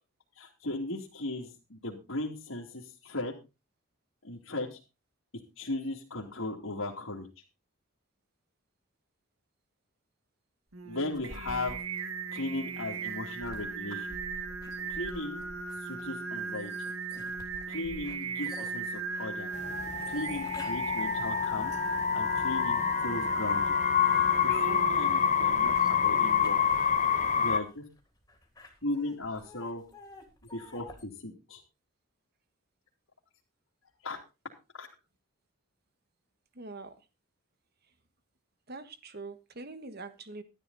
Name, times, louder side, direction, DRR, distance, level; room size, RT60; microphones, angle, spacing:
voice 1, 0.4-3.3 4.2-4.8 5.6-7.3 10.8-11.8 12.3-14.1 14.9-15.4 15.8-16.7 17.7-19.5 20.1-21.7 22.1-23.7 24.1-26.6 27.1-27.8 28.8-29.8 30.5-31.6 34.0-34.2 34.7-34.9, left 2 dB, 70° left, -4 dB, 2.8 m, -37 dB
Singing, 10.7-27.0, right 4 dB, 80° right, 1.8 m, -38 dB
sound 1, 11.1-22.9 23.4-31.0, left 1 dB, 15° left, 3.3 m, -51 dB
sound 2, 19.5-27.6, left 7 dB, 35° left, 1.1 m, -27 dB
voice 2, 36.5-36.9 38.7-40.4, right 3 dB, 45° right, 11 dB, 1.5 m, -43 dB
13.0 x 11.5 x 4.0 m, 0.28 s
head